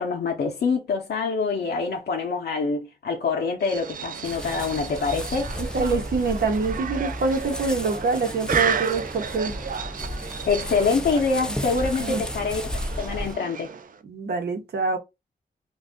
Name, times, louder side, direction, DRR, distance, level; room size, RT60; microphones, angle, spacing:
voice 1, 0.0-5.5 10.5-12.6 13.0-13.7, left 4 dB, 75° left, 0.6 m, -25 dB
sound 1, 3.6-14.0, right 7 dB, 55° right, 0.4 m, -33 dB
sound 2, 4.2-13.3, equal, 5° left, 0.4 m, -33 dB
voice 2, 5.6-9.5 12.0-12.2 14.0-15.0, right 4 dB, 80° right, 0.8 m, -25 dB
2.6 x 2.3 x 3.4 m
wide cardioid pair, 115°, 17 cm